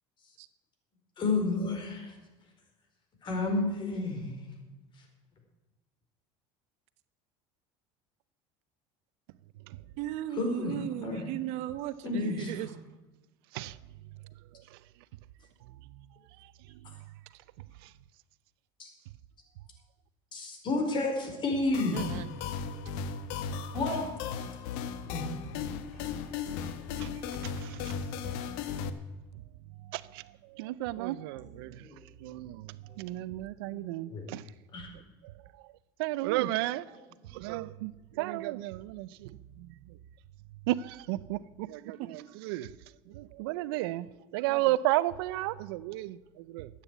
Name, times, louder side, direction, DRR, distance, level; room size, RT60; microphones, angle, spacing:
voice 1, 1.2-2.1 3.2-4.4 10.3-11.3 12.0-12.7 18.8-18.9 20.3-22.0 23.7-24.1 25.1-25.3 31.8-32.0 32.9-33.0 33.6-34.3 34.7-34.9, left 3 dB, 40° left, 4.4 m, -31 dB
voice 2, 10.0-12.7 21.9-22.3, right 13 dB, 65° right, 1.0 m, -36 dB
sound 1, 21.7-28.9, left 6 dB, 75° left, 1.2 m, -36 dB
voice 3, 27.6-27.9 29.9-30.2 30.5-31.8 32.2-32.7 33.0-34.4 36.0-36.9 37.3-37.9 38.2-39.3 40.7-42.7 43.1-44.1 44.3-46.7, right 17 dB, 85° right, 0.6 m, -33 dB
14.0 x 9.0 x 8.1 m
supercardioid pair, 110°, 12 cm